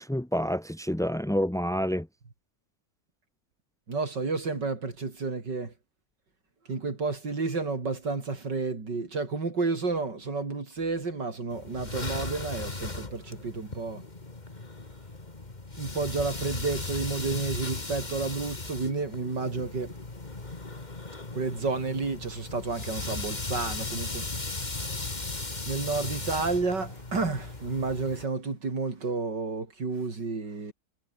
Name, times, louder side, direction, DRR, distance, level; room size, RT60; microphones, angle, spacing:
voice 1, 0.0-2.1, equal, 5° left, 0.4 m, -28 dB
voice 2, 3.9-5.7 6.7-14.1 15.8-20.0 21.3-24.3 25.7-30.7, right 4 dB, 80° right, 4.4 m, -31 dB
sound 1, 11.5-28.2, left 3 dB, 25° left, 2.4 m, -37 dB
omnidirectional pair, 1.9 m